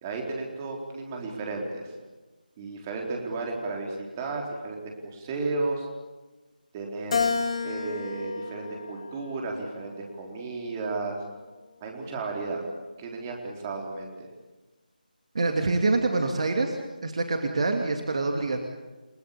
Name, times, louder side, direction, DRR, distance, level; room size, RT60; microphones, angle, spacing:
voice 1, 0.0-1.9 2.6-5.9 6.7-7.4 7.6-11.2 11.8-12.6 13.0-14.3, right 3 dB, 15° right, 1 dB, 4.0 m, -33 dB
Keyboard (musical), 7.1-9.6 10.2-11.4, left 5 dB, 40° left, 2.4 m, -32 dB
voice 2, 15.3-18.6, right 3 dB, 40° right, 4 dB, 2.7 m, -26 dB
30.0 x 20.0 x 8.7 m, 1.2 s
figure-of-eight pair, 160°, 5 cm